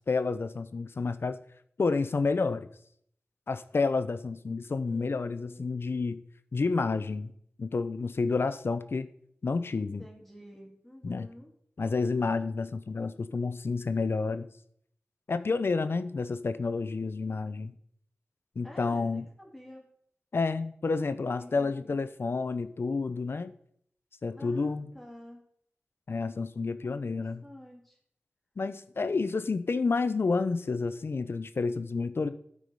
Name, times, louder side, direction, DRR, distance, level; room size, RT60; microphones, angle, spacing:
voice 1, 0.1-1.4 1.8-2.7 3.5-6.2 6.5-7.3 7.6-9.1 9.4-10.0 11.0-11.3 11.8-14.5 15.3-17.7 18.6-19.2 20.3-23.5 24.2-24.9 26.1-27.4 28.6-32.3, left 4 dB, 60° left, 12 dB, 0.6 m, -30 dB
voice 2, 4.8-5.6 5.9-6.0 9.8-11.5 18.6-19.8 21.4-22.0 24.3-25.4 26.8-28.0, equal, 5° left, -2 dB, 2.3 m, -50 dB
12.5 x 4.9 x 5.4 m, 0.67 s
wide cardioid pair, 100°, 4 cm